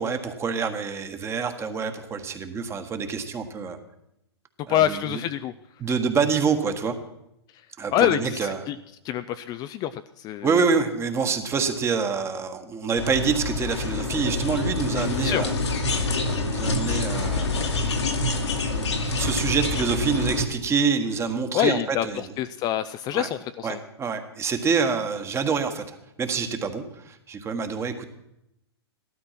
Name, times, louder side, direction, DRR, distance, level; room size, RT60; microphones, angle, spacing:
voice 1, 0.0-3.8 4.7-5.2 5.8-6.9 7.8-8.6 10.4-15.5 16.2-17.8 18.7-22.2 23.1-23.3 23.6-28.1, right 5 dB, 20° right, 8 dB, 1.5 m, -26 dB
voice 2, 4.7-5.5 7.9-8.7 9.0-10.6 15.2-15.5 21.5-23.8, left 11 dB, 30° left, 11 dB, 0.5 m, -26 dB
sound 1, 13.0-20.5, left 3 dB, 85° left, 2.2 m, -26 dB
14.5 x 12.5 x 5.9 m, 0.83 s
hypercardioid pair, 125°, 14 cm